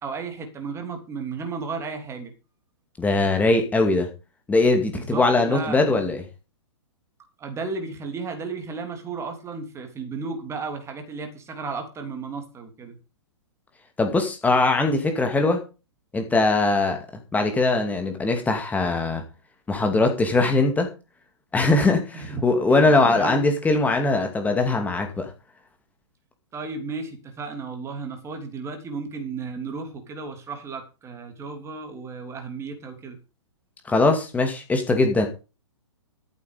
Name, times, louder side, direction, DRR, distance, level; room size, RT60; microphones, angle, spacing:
voice 1, 0.0-2.3 4.9-6.0 7.4-13.0 22.1-22.4 22.7-23.4 26.5-33.2, right 4 dB, 20° right, 5 dB, 3.2 m, -34 dB
voice 2, 3.0-4.1 4.5-6.2 14.0-15.6 16.1-17.0 17.3-19.2 19.7-20.9 21.5-25.3 33.9-35.3, left 3 dB, 10° left, 4 dB, 2.5 m, -21 dB
14.0 x 8.2 x 5.2 m, 0.31 s
figure-of-eight pair, 120°, 16 cm